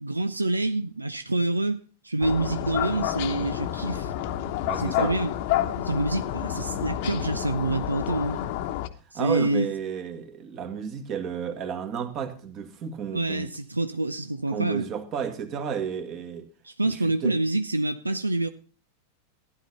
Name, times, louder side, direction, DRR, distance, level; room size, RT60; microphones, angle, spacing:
voice 1, 0.0-4.1 4.7-5.3 5.8-8.4 9.1-9.7 13.1-14.9 16.6-18.5, right 2 dB, 80° right, 0.6 m, -27 dB
sound 1, 2.2-8.9, left 12 dB, 50° left, 1.0 m, -29 dB
voice 2, 4.7-5.1 9.1-13.5 14.5-16.5 16.8-17.3, right 7 dB, 35° right, 2.0 m, -32 dB
15.5 x 10.5 x 4.1 m
figure-of-eight pair, 90°, 0 cm